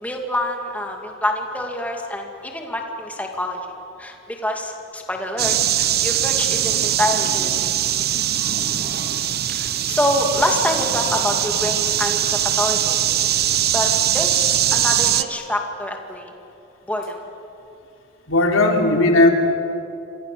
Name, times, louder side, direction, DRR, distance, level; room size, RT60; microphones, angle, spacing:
voice 1, 0.0-3.6 4.0-7.7 9.5-13.0 13.7-13.9 14.1-16.3 16.9-17.2, left 1 dB, 5° left, 2 dB, 2.4 m, -26 dB
sound 1, 5.4-15.2, right 11 dB, 50° right, 0.9 m, -21 dB
voice 2, 18.3-19.3, left 2 dB, 85° left, 2 dB, 3.5 m, -16 dB
28.5 x 26.5 x 6.9 m, 2.8 s
head